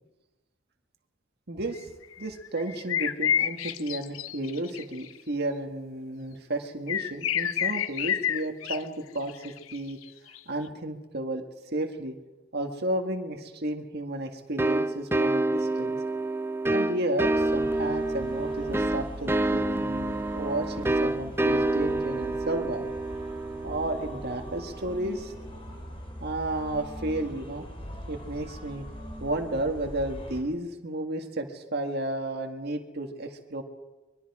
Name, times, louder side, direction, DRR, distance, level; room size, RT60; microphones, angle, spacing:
voice 1, 1.5-1.8 2.2-10.0 10.5-11.4 11.7-12.1 12.5-16.0 16.7-22.9 23.6-25.3 26.2-27.7 28.1-28.8 29.2-33.6, right 1 dB, 55° right, 4 dB, 1.9 m, -32 dB
sound 1, 1.7-5.2 6.9-8.8 9.2-10.4, left 9 dB, 85° left, 0.7 m, -29 dB
sound 2, 14.6-25.1, right 2 dB, 10° right, 0.6 m, -28 dB
sound 3, 17.2-30.4, equal, 30° left, 3.4 m, -42 dB
24.5 x 22.0 x 4.9 m, 1.1 s
head